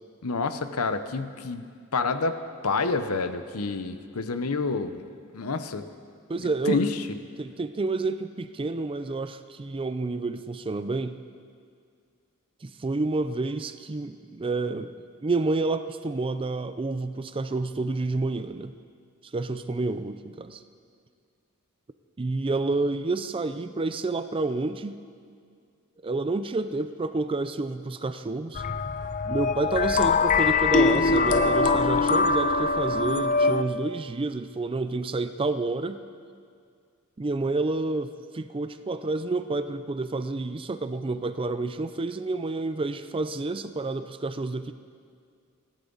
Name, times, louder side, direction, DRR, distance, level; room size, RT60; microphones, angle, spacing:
voice 1, 0.2-1.6 1.9-2.4 2.6-5.0 5.3-5.9 6.7-7.0, left 4 dB, 75° left, 10 dB, 0.9 m, -28 dB
voice 2, 6.3-6.8 7.4-11.2 12.6-14.9 15.2-18.7 19.3-20.6 22.2-25.0 26.0-28.6 29.2-36.0 37.2-44.7, right 3 dB, 25° right, 11 dB, 0.4 m, -29 dB
sound 1, 28.6-33.6, left 4 dB, 35° left, 0.5 m, -23 dB
30.0 x 11.5 x 4.0 m, 2.2 s
head